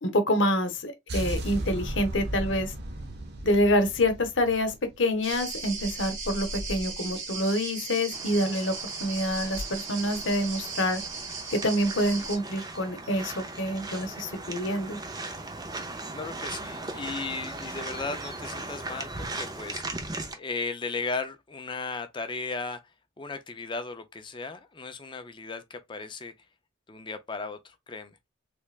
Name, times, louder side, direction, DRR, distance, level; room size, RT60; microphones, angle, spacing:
voice 1, 0.0-2.7 3.4-11.0 11.5-15.0, left 1 dB, 65° left, 0.9 m, -27 dB
sound 1, 1.1-5.2, right 1 dB, 55° right, 0.8 m, -35 dB
sound 2, 5.2-12.4, right 4 dB, 80° right, 2.0 m, -36 dB
sound 3, 8.1-20.3, right 2 dB, 20° right, 0.6 m, -38 dB
voice 2, 16.1-19.8 20.3-22.8 23.2-26.3 26.9-28.2, left 4 dB, 25° left, 0.5 m, -36 dB
3.3 x 3.3 x 2.4 m
head